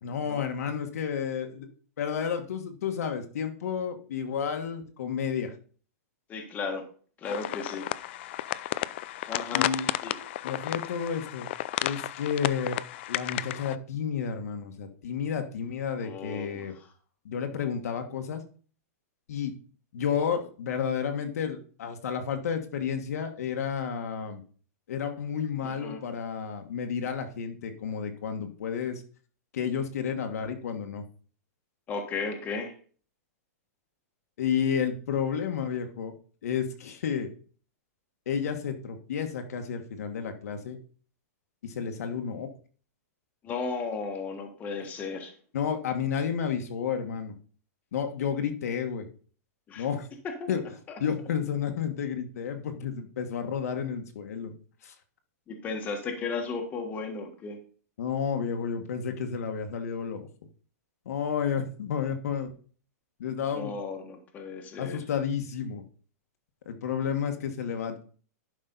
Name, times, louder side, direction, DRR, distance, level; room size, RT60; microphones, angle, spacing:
voice 1, 0.0-1.7 2.0-5.5 9.5-9.9 10.4-11.5 11.8-12.8 13.1-16.7 17.2-18.4 19.3-19.5 19.9-24.4 24.9-29.0 29.5-31.0 34.4-36.1 36.4-37.3 38.3-40.8 41.6-42.5 45.5-47.3 47.9-49.1 49.8-50.1 50.5-50.6 51.0-54.5 54.8-54.9 58.0-60.3 61.0-62.5 63.2-63.7 64.8-65.8 66.6-68.0, left 7 dB, 70° left, 5 dB, 1.5 m, -31 dB
voice 2, 6.3-6.9 7.2-7.9 9.3-9.7 10.0-10.2 16.0-16.6 25.6-26.0 31.9-32.7 43.4-45.3 49.7-49.8 50.2-50.5 55.5-57.6 63.6-65.0, left 4 dB, 20° left, 3 dB, 1.5 m, -35 dB
sound 1, 7.2-13.8, left 15 dB, 45° left, 0.4 m, -33 dB
11.0 x 5.4 x 4.0 m, 0.41 s
hypercardioid pair, 160°, 9 cm